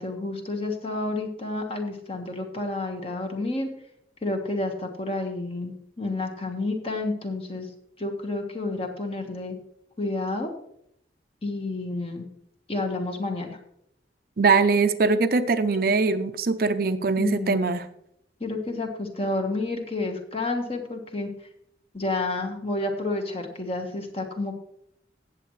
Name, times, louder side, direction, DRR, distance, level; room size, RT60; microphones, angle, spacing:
voice 1, 0.0-3.7 4.2-7.7 8.0-9.6 10.0-10.5 11.4-12.3 12.7-13.6 17.2-17.6 18.4-21.3 21.9-24.5, left 2 dB, 35° left, 3 dB, 1.4 m, -30 dB
voice 2, 14.4-17.9, right 4 dB, 55° right, 10 dB, 0.6 m, -22 dB
17.0 x 7.5 x 3.2 m, 0.74 s
head